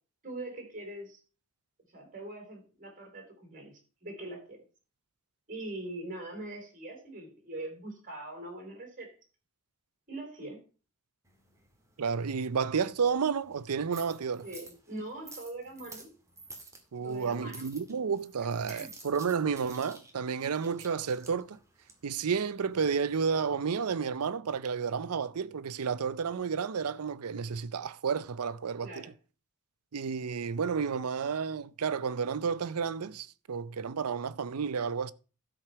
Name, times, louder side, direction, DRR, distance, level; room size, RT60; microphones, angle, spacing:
voice 1, 0.2-1.2 1.9-4.6 5.5-9.1 10.1-10.6 14.4-16.1 17.0-17.7 18.7-18.9 28.8-29.1, right 2 dB, 40° right, 4.2 m, -42 dB
sound 1, 11.2-23.3, right 2 dB, 15° right, 2.2 m, -52 dB
voice 2, 12.0-14.5 16.9-21.6 22.0-29.1 29.9-35.1, right 6 dB, 90° right, 0.6 m, -31 dB
12.5 x 5.1 x 5.8 m
head